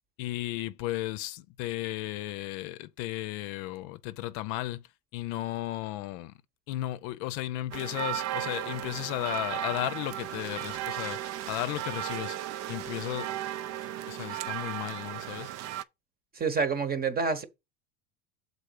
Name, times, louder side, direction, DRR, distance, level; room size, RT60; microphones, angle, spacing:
voice 1, 0.2-4.8 5.1-6.3 6.7-12.4 12.7-15.5, left 15 dB, 60° left, 0.7 m, -35 dB
sound 1, 7.7-15.8, right 12 dB, 40° right, 0.5 m, -35 dB
voice 2, 16.4-17.4, right 5 dB, 20° right, 1.0 m, -28 dB
6.8 x 4.1 x 6.6 m
supercardioid pair, 130°, 44 cm